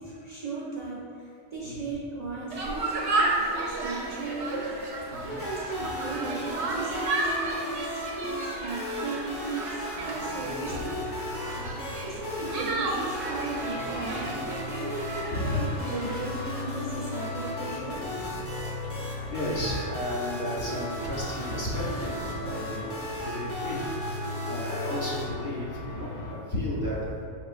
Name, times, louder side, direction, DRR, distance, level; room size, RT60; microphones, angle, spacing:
voice 1, 0.0-9.8 10.1-11.1 12.0-14.3 14.8-18.1, right 3 dB, 40° right, -7 dB, 0.6 m, -36 dB
sound 1, 2.5-16.6, right 2 dB, 70° right, 0.9 m, -33 dB
voice 2, 5.1-5.4 10.4-10.8 11.5-11.8 15.3-15.6 18.8-18.9 19.3-23.8 24.5-27.3, left 1 dB, 45° left, -6 dB, 0.8 m, -33 dB
sound 2, 5.4-25.3, equal, 15° left, 0.6 m, -36 dB
sound 3, 9.9-26.3, left 3 dB, 70° left, 1.1 m, -39 dB
5.3 x 3.7 x 2.5 m, 2.3 s
omnidirectional pair, 1.2 m